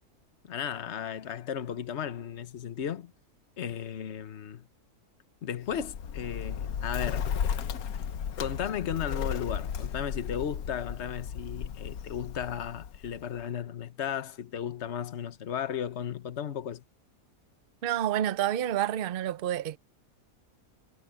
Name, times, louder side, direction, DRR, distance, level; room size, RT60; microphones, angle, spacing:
voice 1, 0.4-3.1 3.6-4.7 5.4-7.3 8.4-16.8, left 8 dB, 50° left, 1.3 m, -35 dB
Bird, 5.6-13.4, left 8 dB, 75° left, 1.4 m, -34 dB
voice 2, 17.8-19.8, right 11 dB, 50° right, 0.7 m, -29 dB
omnidirectional pair, 1.5 m